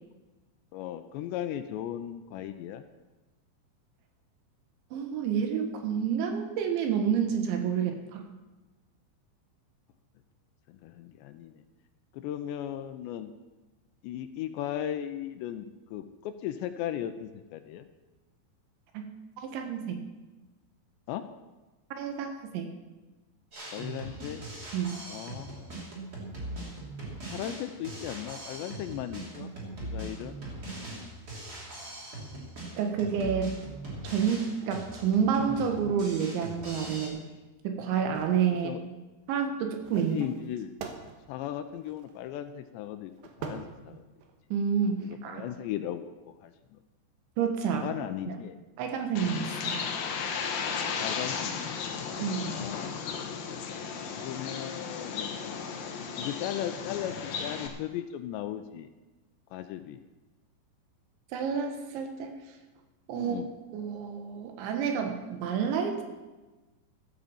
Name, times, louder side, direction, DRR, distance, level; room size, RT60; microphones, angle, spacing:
voice 1, 0.7-2.8 10.7-11.6 12.1-13.3 14.0-17.9 21.1-21.3 23.7-24.4 25.0-25.8 27.3-29.5 29.8-30.4 38.5-38.8 40.1-40.7 41.3-43.1 43.5-44.0 45.0-46.8 47.7-48.6 51.0-51.8 52.0-52.9 54.2-55.4 56.2-58.9 59.5-60.0 63.1-63.5, left 11 dB, 80° left, 9 dB, 2.8 m, -37 dB
voice 2, 4.9-8.2 19.5-20.0 22.0-22.7 24.7-25.0 32.8-33.6 34.0-37.2 37.6-38.7 39.3-40.2 44.5-45.0 45.2-45.4 47.4-47.9 48.3-48.4 48.8-49.8 52.2-52.6 61.3-62.3 63.1-63.4 63.7-66.0, right 7 dB, 80° right, 4 dB, 3.8 m, -29 dB
Drum kit, 23.5-37.1, right 1 dB, 25° right, 2.9 m, -41 dB
sound 1, 37.9-38.5 39.8-42.3 43.2-44.4 44.9-45.1, right 5 dB, 65° right, 2.5 m, -44 dB
Bird, 49.2-57.7, left 6 dB, 65° left, 2.7 m, -35 dB
13.5 x 9.2 x 7.2 m, 1.2 s
omnidirectional pair, 5.3 m